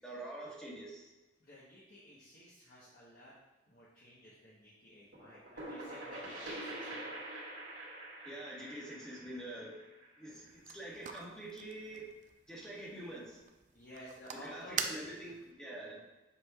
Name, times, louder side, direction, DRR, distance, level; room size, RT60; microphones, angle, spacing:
voice 1, 0.0-1.1 8.2-9.8 10.2-12.1 12.5-13.5 14.4-16.0, right 1 dB, 5° left, -6 dB, 1.3 m, -46 dB
voice 2, 1.4-3.3 3.7-7.1 13.7-14.8, equal, 50° left, -7 dB, 1.1 m, -54 dB
sound 1, 5.1-10.7, right 1 dB, 80° right, 2.1 m, -45 dB
sound 2, 10.3-15.5, right 6 dB, 45° right, 0.4 m, -45 dB
7.3 x 6.2 x 2.4 m, 1.1 s
head